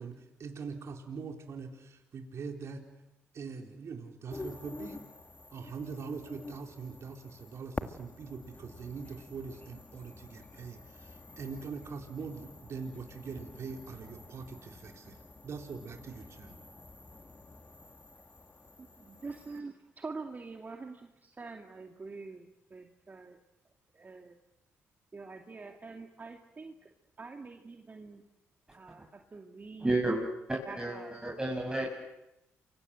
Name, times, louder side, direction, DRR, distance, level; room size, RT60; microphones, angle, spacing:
voice 1, 0.0-2.8 3.3-5.0 5.5-15.2 15.4-16.6, right 5 dB, 60° right, 3 dB, 4.1 m, -42 dB
sound 1, 4.3-19.6, left 2 dB, 25° left, 2.1 m, -48 dB
voice 2, 18.8-23.4 23.9-24.4 25.1-26.7 27.2-28.2 28.7-29.9 30.6-31.1 31.8-31.9, right 4 dB, 35° right, 3 dB, 2.5 m, -45 dB
voice 3, 29.8-30.2 30.5-31.9, right 2 dB, 15° right, -1 dB, 7.3 m, -31 dB
29.0 x 24.5 x 7.9 m, 0.88 s
supercardioid pair, 65°, 5 cm